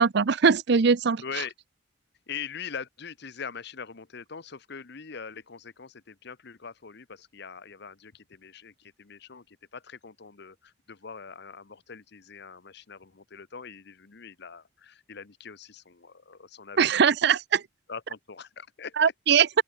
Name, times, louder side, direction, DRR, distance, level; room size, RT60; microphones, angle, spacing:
voice 1, 0.0-1.2 16.8-17.6 19.0-19.6, right 6 dB, 65° right, 0.6 m, -21 dB
voice 2, 1.2-1.5 2.3-17.0 17.9-19.0, left 6 dB, 65° left, 1.0 m, -42 dB
open air
head